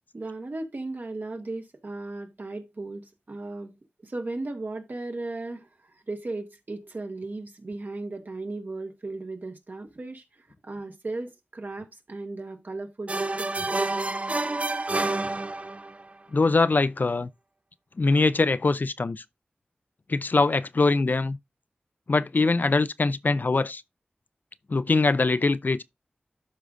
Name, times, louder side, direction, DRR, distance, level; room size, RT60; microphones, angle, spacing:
voice 1, 0.1-3.7 4.0-13.7, right 2 dB, 60° right, 1.8 m, -36 dB
sound 1, 13.1-16.0, right 2 dB, 40° right, 0.5 m, -28 dB
voice 2, 16.3-17.3 18.0-19.2 20.1-21.4 22.1-23.8 24.7-25.8, left 3 dB, 55° left, 0.5 m, -23 dB
12.5 x 4.9 x 2.6 m
wide cardioid pair, 50°, 4 cm